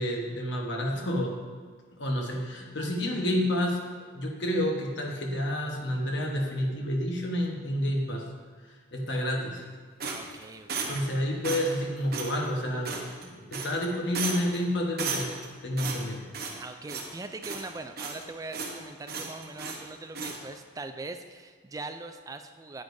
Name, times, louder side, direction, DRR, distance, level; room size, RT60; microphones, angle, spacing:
voice 1, 0.0-1.3 2.0-3.8 4.1-8.2 8.9-9.6 10.9-15.3 15.6-16.2, left 1 dB, 60° left, 0 dB, 1.2 m, -29 dB
voice 2, 10.0-11.2 16.6-22.8, right 3 dB, 15° right, 8 dB, 0.3 m, -41 dB
sound 1, 10.0-11.1 11.4-11.8 12.1-12.3 12.8-13.2 13.5-13.9 14.1-14.6 15.0-15.5 15.8-16.6 16.9-17.1 17.4-18.2 18.5-18.8 19.1-19.8 20.1-20.4, right 4 dB, 50° right, 0.9 m, -34 dB
9.5 x 8.6 x 2.6 m, 1.5 s
head